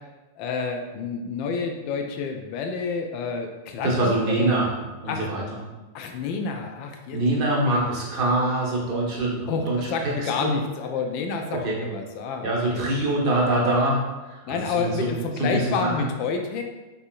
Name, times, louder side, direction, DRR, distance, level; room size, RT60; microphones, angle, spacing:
voice 1, 0.4-4.5 5.1-5.3 5.9-7.2 7.6-7.8 9.5-12.9 14.4-16.6, left 5 dB, 45° left, 3 dB, 0.4 m, -29 dB
voice 2, 3.8-4.7 5.0-5.6 7.1-10.6 11.5-11.8 12.4-15.1 15.4-15.9, right 1 dB, 40° right, -3 dB, 1.0 m, -24 dB
3.6 x 2.8 x 2.4 m, 1.1 s
figure-of-eight pair, 90°, 0 cm